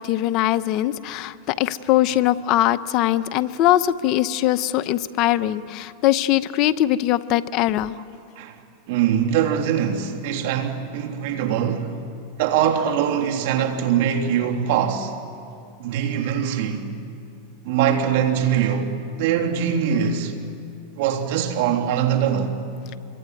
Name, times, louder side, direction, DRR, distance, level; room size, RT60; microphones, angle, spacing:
voice 1, 0.0-7.9, left 13 dB, 45° left, 0.8 m, -21 dB
voice 2, 8.9-11.9 12.4-15.1 15.8-16.8 17.6-20.3 21.0-22.5, right 8 dB, 65° right, 3.0 m, -22 dB
26.0 x 23.5 x 9.4 m
supercardioid pair, 130°, 0 cm